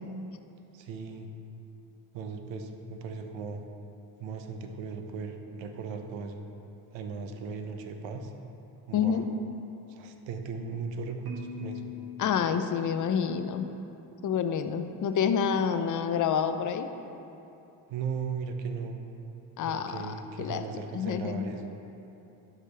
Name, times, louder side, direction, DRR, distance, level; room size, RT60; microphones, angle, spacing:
voice 1, 0.7-1.3 2.1-3.6 4.2-6.4 6.9-8.3 8.9-9.2 9.9-11.9 17.9-19.0 19.7-21.7, right 5 dB, 85° right, 5 dB, 0.8 m, -37 dB
voice 2, 8.9-9.2 12.2-13.7 14.2-16.9 19.6-20.6 20.9-21.5, left 7 dB, 45° left, 9 dB, 0.6 m, -28 dB
Marimba xylophone, 11.3-13.4, left 6 dB, 55° right, 1.4 m, -43 dB
11.5 x 5.0 x 3.3 m, 2.9 s
cardioid pair, 85°, 44 cm